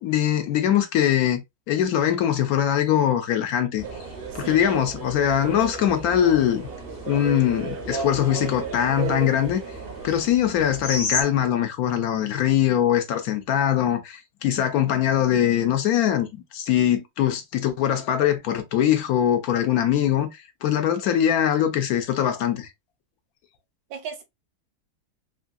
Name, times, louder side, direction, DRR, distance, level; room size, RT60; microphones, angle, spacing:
voice 1, 0.0-1.4 1.7-3.8 4.3-6.7 7.1-9.6 10.0-22.7, left 10 dB, 80° left, 1.1 m, -22 dB
sound 1, 3.8-11.2, left 3 dB, 35° left, 0.7 m, -36 dB
sound 2, 3.8-10.4, right 6 dB, 60° right, 0.6 m, -35 dB
voice 2, 4.4-4.7 23.9-24.2, right 7 dB, 85° right, 1.3 m, -36 dB
3.2 x 2.6 x 2.2 m
omnidirectional pair, 1.6 m